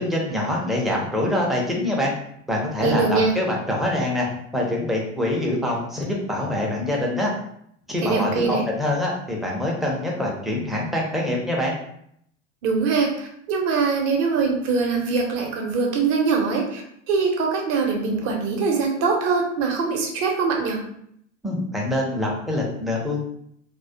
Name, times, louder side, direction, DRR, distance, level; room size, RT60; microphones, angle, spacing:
voice 1, 0.0-2.1 2.5-4.3 4.5-7.3 7.9-11.7 21.4-23.2, left 1 dB, ahead, -3 dB, 0.4 m, -25 dB
voice 2, 2.8-3.3 8.0-8.6 12.6-16.8 17.1-20.8, right 4 dB, 45° right, 1 dB, 0.7 m, -22 dB
2.3 x 2.1 x 2.6 m, 0.70 s
figure-of-eight pair, 80°, 37 cm